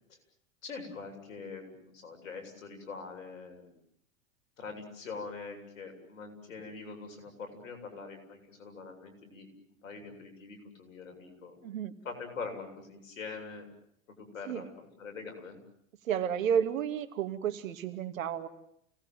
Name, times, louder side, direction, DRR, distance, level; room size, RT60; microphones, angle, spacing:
voice 1, 0.6-3.8 4.6-11.5 12.0-13.7 14.1-14.6 15.0-15.6, left 4 dB, 85° left, 5 dB, 7.7 m, -43 dB
voice 2, 11.6-12.0 14.4-14.7 16.0-18.5, right 8 dB, 80° right, 8 dB, 2.6 m, -31 dB
29.5 x 19.5 x 9.3 m, 0.71 s
hypercardioid pair, 95°, 39 cm